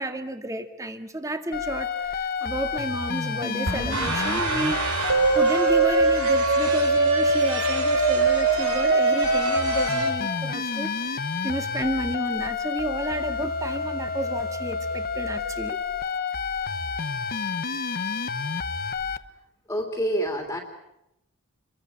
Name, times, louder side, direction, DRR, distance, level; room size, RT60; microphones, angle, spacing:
voice 1, 0.0-4.8 5.3-15.8, right 1 dB, 15° right, 7 dB, 2.0 m, -31 dB
sound 1, 1.5-19.2, left 5 dB, 45° left, 1.0 m, -30 dB
Explosion, 3.6-5.4, right 1 dB, 60° right, 3.7 m, -35 dB
sound 2, 3.9-10.1, right 3 dB, 75° right, 5.0 m, -22 dB
voice 2, 19.7-20.6, equal, 10° left, 2 dB, 2.9 m, -27 dB
29.5 x 22.5 x 7.1 m, 0.85 s
head